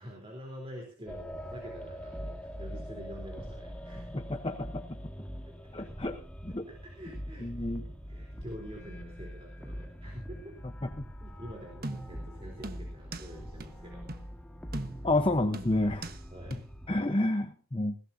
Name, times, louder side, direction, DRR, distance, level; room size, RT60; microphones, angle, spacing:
voice 1, 0.0-4.2 5.2-5.3 5.6-5.9 6.7-10.6 11.2-14.2 16.3-16.6, equal, 25° right, 1 dB, 3.6 m, -47 dB
sound 1, 1.1-17.0, equal, 5° left, 1.6 m, -43 dB
voice 2, 4.1-4.8 5.7-6.2 6.4-6.7 7.4-7.8 15.0-16.1 16.9-18.0, left 2 dB, 25° left, 7 dB, 0.9 m, -29 dB
sound 2, 11.8-12.3 12.6-13.3 13.6-13.7 14.1-14.3 14.7-15.2 15.5-16.2 16.5-16.6, right 2 dB, 40° right, 1.2 m, -40 dB
21.0 x 16.5 x 2.7 m, 0.36 s
head